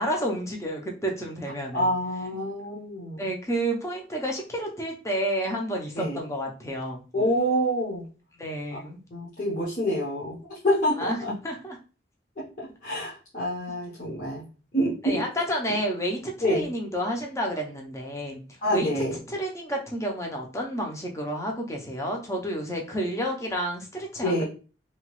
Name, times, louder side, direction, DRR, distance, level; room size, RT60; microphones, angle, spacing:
voice 1, 0.0-1.9 3.2-7.0 8.4-9.0 11.0-11.2 11.4-11.8 15.0-18.4 18.7-24.4, equal, 15° left, 1 dB, 0.5 m, -30 dB
voice 2, 1.7-3.3 5.9-6.2 7.1-8.1 8.7-8.8 9.1-11.3 12.6-14.4 14.7-15.2 16.4-16.7 18.6-19.1 24.2-24.5, equal, 45° left, -8 dB, 0.8 m, -27 dB
2.8 x 2.2 x 3.0 m, 0.35 s
head